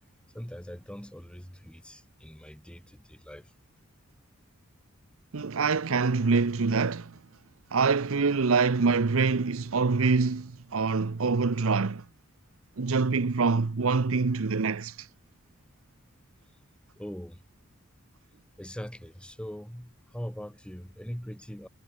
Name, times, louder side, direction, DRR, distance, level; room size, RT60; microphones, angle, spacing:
voice 1, 0.3-3.5 17.0-17.4 18.6-21.7, equal, 5° left, 1.5 m, -41 dB
voice 2, 5.3-7.2 7.7-12.0 12.8-15.1, right 4 dB, 75° right, 0.7 m, -25 dB
head